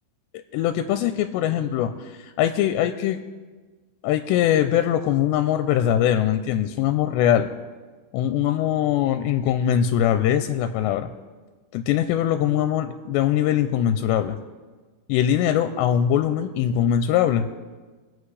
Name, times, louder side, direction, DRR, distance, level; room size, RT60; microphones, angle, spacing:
voice 1, 0.5-3.2 4.0-7.5 8.1-11.1 11.7-14.4 15.1-17.5, left 10 dB, 90° left, 8 dB, 2.8 m, -22 dB
25.0 x 8.5 x 3.3 m, 1.4 s
omnidirectional pair, 4.9 m